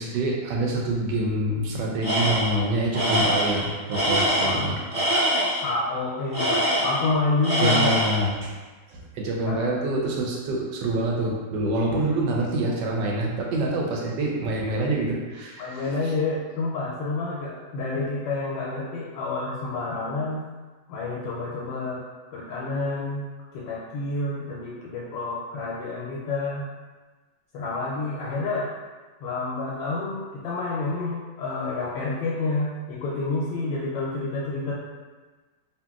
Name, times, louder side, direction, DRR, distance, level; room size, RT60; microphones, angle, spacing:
voice 1, 0.0-4.8 7.6-8.6 8.9-16.1, right 1 dB, 80° right, -2 dB, 1.2 m, -26 dB
Tools, 2.0-2.6 2.9-5.7 6.3-7.1 7.4-8.3, equal, 45° right, 0.8 m, -24 dB
voice 2, 5.6-8.0 9.4-9.7 15.6-20.4 20.9-22.0 22.3-23.3 23.5-26.7 27.5-28.7 29.2-34.7, left 3 dB, 90° left, -5 dB, 1.3 m, -28 dB
2.9 x 2.8 x 2.3 m, 1.3 s
omnidirectional pair, 2.0 m